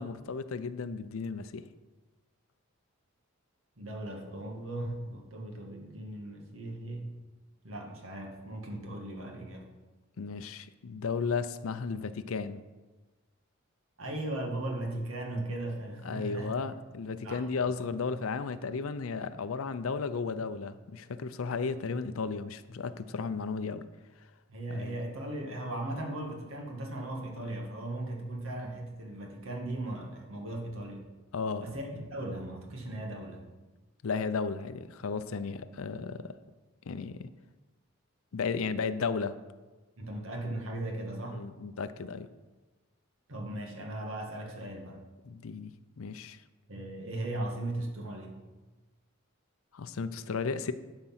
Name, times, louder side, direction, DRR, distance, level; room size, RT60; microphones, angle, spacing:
voice 1, 0.0-1.7 10.2-12.6 16.0-23.9 24.7-25.0 31.3-31.7 34.0-36.4 36.9-37.3 38.3-39.4 41.3-42.3 45.2-46.4 49.7-50.7, left 5 dB, 80° left, 12 dB, 0.5 m, -34 dB
voice 2, 3.8-7.2 7.6-9.7 14.0-16.6 17.2-17.8 24.5-31.1 31.6-33.5 40.0-41.5 43.3-45.0 46.7-48.4, right 1 dB, 70° right, 1 dB, 1.8 m, -38 dB
11.5 x 5.0 x 5.8 m, 1.2 s
head